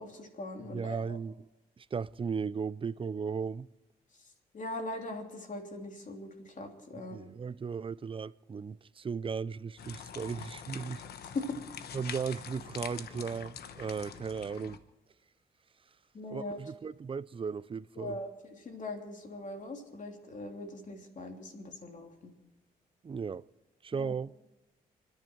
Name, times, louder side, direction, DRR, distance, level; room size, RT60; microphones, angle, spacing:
voice 1, 0.0-1.2 4.5-7.3 11.3-11.4 16.1-16.6 18.0-22.3 23.9-24.1, left 2 dB, 50° left, 3.2 m, -41 dB
voice 2, 0.7-1.3 1.8-3.7 6.9-11.0 11.9-14.8 16.3-18.2 23.0-23.4 23.8-24.3, right 5 dB, 35° right, 0.5 m, -36 dB
sound 1, 9.8-14.8, left 8 dB, 75° left, 1.1 m, -45 dB
29.5 x 10.5 x 4.6 m
cardioid pair, 70°, 16 cm